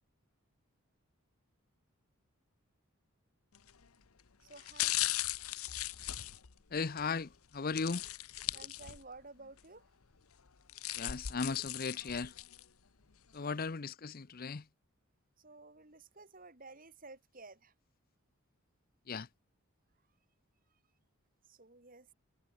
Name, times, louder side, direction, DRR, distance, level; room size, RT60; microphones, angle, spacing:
sound 1, 3.5-3.8 4.5-7.1 7.8-9.2 9.6-9.7 10.5-12.6 13.1-13.2, left 14 dB, 75° left, 0.9 m, -38 dB
voice 1, 4.4-4.9 8.5-9.8 15.4-17.7 21.5-22.1, right 3 dB, 40° right, 3.0 m, -53 dB
voice 2, 6.7-8.1 11.0-12.3 13.3-14.6 19.1-19.3, left 4 dB, 40° left, 0.6 m, -37 dB
head